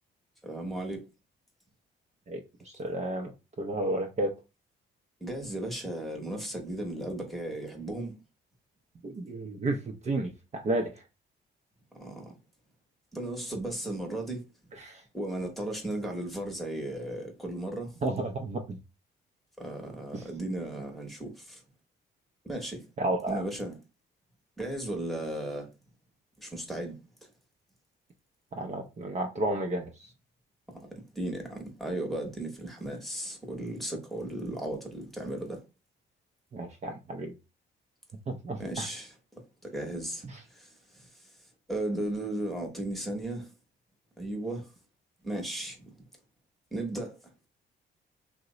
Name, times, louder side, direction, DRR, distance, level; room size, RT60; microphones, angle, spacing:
voice 1, 0.4-1.0 5.2-8.1 11.9-12.4 13.1-14.5 15.1-18.0 19.6-21.6 22.4-22.8 23.3-23.8 24.6-25.7 26.4-26.9 30.7-35.6 38.6-39.1 39.6-40.2 40.5-41.1 41.7-43.5 44.2-44.7 45.2-45.9 46.7-47.2, right 1 dB, ahead, 1.0 m, -35 dB
voice 2, 2.6-3.3 3.6-4.3 9.0-10.9 14.8-15.0 18.0-18.8 20.1-20.2 23.0-23.4 28.5-29.9 36.5-37.3 38.3-38.9 40.2-40.4, right 2 dB, 35° right, 0.5 m, -32 dB
2.8 x 2.1 x 3.7 m
cardioid pair, 90°, 20 cm